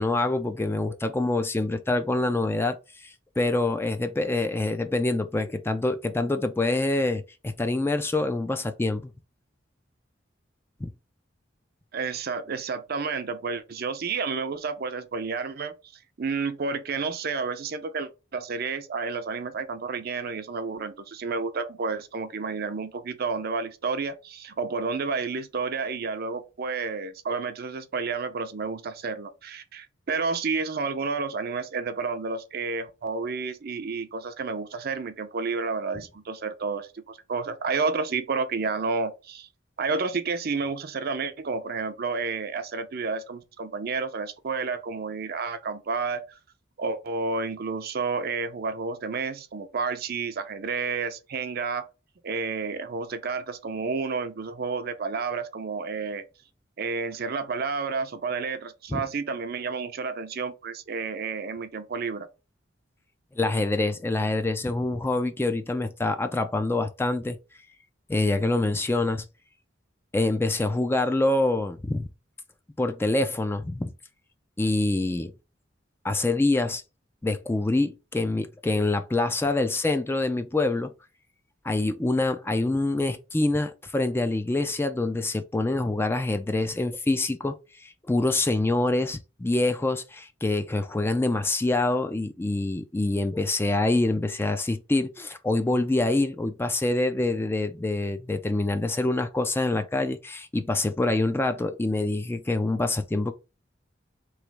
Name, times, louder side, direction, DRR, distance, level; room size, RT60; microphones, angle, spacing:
voice 1, 0.0-9.1 10.8-10.9 58.9-59.0 63.3-67.4 68.1-69.2 70.1-72.1 72.8-73.9 74.6-75.3 76.0-76.8 77.2-80.9 81.6-103.3, left 2 dB, 10° left, 0.3 m, -26 dB
voice 2, 11.9-15.7 16.2-39.5 39.8-46.2 46.8-51.9 52.2-56.2 56.8-62.3, right 4 dB, 55° right, 0.5 m, -30 dB
3.1 x 3.0 x 4.6 m
head